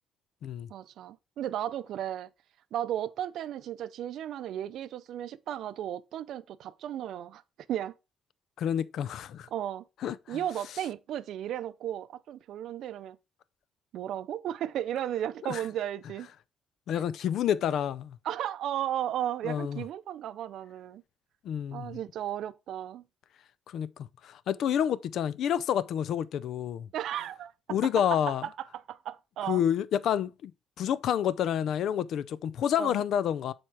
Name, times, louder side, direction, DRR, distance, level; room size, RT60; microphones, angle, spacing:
voice 1, 0.7-2.3 2.7-7.4 7.7-7.9 9.5-9.8 10.3-13.2 13.9-16.3 18.2-21.0 21.7-23.0 26.9-27.5 28.3-29.6 32.8-33.0, right 11 dB, 75° right, 0.5 m, -34 dB
voice 2, 8.6-9.5 10.0-10.4 15.4-15.6 16.9-18.2 19.4-19.8 21.4-22.0 23.7-23.9 24.2-26.9 27.7-28.5 29.5-30.5 30.8-33.5, left 9 dB, 75° left, 0.5 m, -29 dB
7.6 x 4.4 x 4.7 m
cardioid pair, 90°, 0 cm